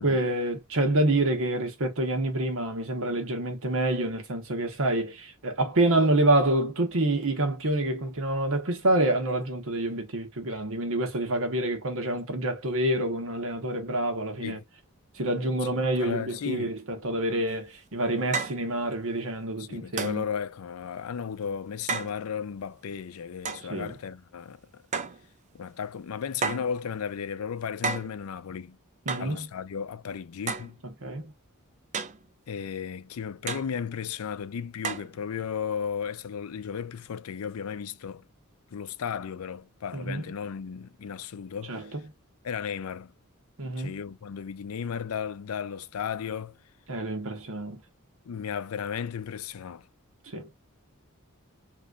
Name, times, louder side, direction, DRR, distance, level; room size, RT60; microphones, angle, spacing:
voice 1, 0.0-14.6 15.1-20.2 23.7-24.0 29.1-29.5 30.8-31.3 39.9-40.2 41.7-42.0 43.6-44.0 46.9-47.8 50.3-50.5, right 1 dB, 65° right, 1.1 m, -27 dB
voice 2, 15.7-16.7 19.6-24.8 25.5-28.8 29.2-30.8 32.5-38.3 38.7-41.9 42.4-43.1 43.8-46.6 48.3-49.9, left 7 dB, 75° left, 0.4 m, -35 dB
sound 1, 17.5-17.6 18.3-18.6 20.0-20.3 21.9-22.2 23.5-23.7 24.9-25.2 26.4-26.7 27.8-28.2 29.1-29.4 30.5-30.7 31.9-32.3 33.5-33.7 34.8-35.1, right 4 dB, 35° right, 0.5 m, -31 dB
3.4 x 3.0 x 2.4 m
head